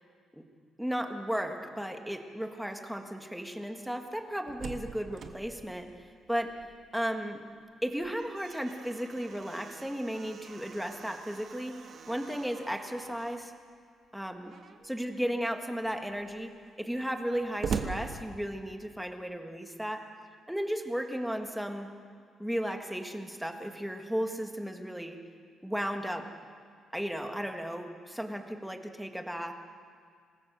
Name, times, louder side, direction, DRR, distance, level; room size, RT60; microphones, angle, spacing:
voice 1, 0.8-5.9 6.3-6.5 6.9-7.4 7.8-11.8 12.1-13.5 14.1-14.5 14.9-16.5 16.8-20.1 20.5-21.9 22.4-25.2 25.6-26.3 26.9-29.5, equal, ahead, 4 dB, 1.6 m, -35 dB
Slam, 4.2-7.0 7.3-7.4 7.9-13.5 14.4-14.9 15.5-15.6 15.8-18.9, right 5 dB, 50° right, 1.5 m, -42 dB
26.0 x 20.0 x 6.8 m, 2.2 s
cardioid pair, 145°, 0 cm